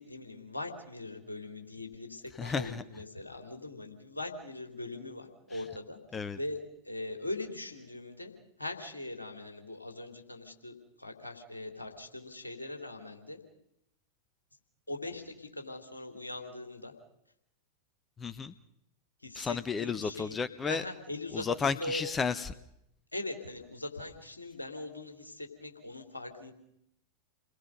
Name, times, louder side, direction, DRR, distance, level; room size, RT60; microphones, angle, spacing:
voice 1, 0.0-6.0 6.3-6.6 6.8-8.3 8.6-13.4 14.9-16.9 19.2-20.3 20.6-21.5 21.8-22.0 23.1-26.5, left 2 dB, 80° left, 4 dB, 3.5 m, -41 dB
voice 2, 2.4-2.8 5.5-5.6 6.1-6.4 18.2-18.5 19.3-20.8 21.3-22.5, left 5 dB, 20° left, 13 dB, 0.9 m, -32 dB
29.5 x 21.5 x 5.4 m, 0.79 s
figure-of-eight pair, 90°, 0 cm